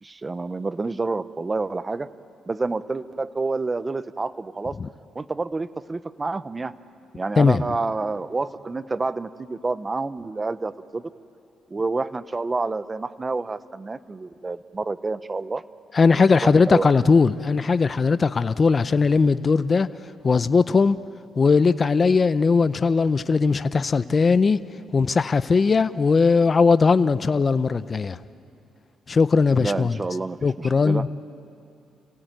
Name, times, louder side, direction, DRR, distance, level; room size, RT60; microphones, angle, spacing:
voice 1, 0.0-2.1 2.5-4.8 5.1-6.7 7.1-11.0 11.7-15.6 16.1-17.1 29.6-31.0, right 3 dB, 25° right, 14 dB, 0.8 m, -28 dB
voice 2, 15.9-19.9 20.2-21.0 21.4-24.6 24.9-28.2 29.1-30.0 30.4-31.1, left 4 dB, 35° left, 14 dB, 0.6 m, -19 dB
29.0 x 16.5 x 9.1 m, 2.6 s
cardioid pair, 90°, 0 cm